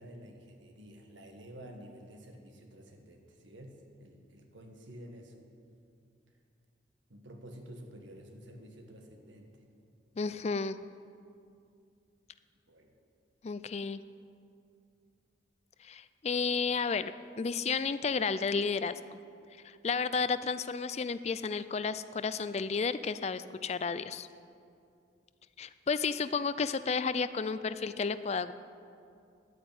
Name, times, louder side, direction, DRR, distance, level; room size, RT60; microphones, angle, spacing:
voice 1, 0.0-5.3 7.1-9.5 12.7-12.9, equal, 90° right, 3 dB, 1.8 m, -50 dB
voice 2, 10.2-10.8 13.4-14.0 15.8-17.1 17.4-19.2 19.6-24.3 25.6-28.5, left 5 dB, 35° left, 14 dB, 0.4 m, -32 dB
11.0 x 9.2 x 8.8 m, 2.4 s
head